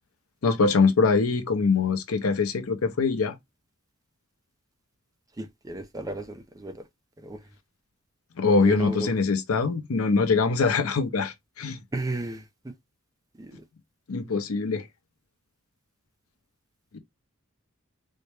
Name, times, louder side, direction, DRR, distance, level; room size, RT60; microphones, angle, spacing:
voice 1, 0.4-3.3 8.4-11.8 14.1-14.8 16.9-17.0, left 4 dB, 90° left, 0.6 m, -23 dB
voice 2, 5.4-6.2 6.6-6.7 8.6-9.1 11.9-12.4, right 2 dB, 15° right, 0.5 m, -32 dB
4.0 x 2.1 x 3.2 m
head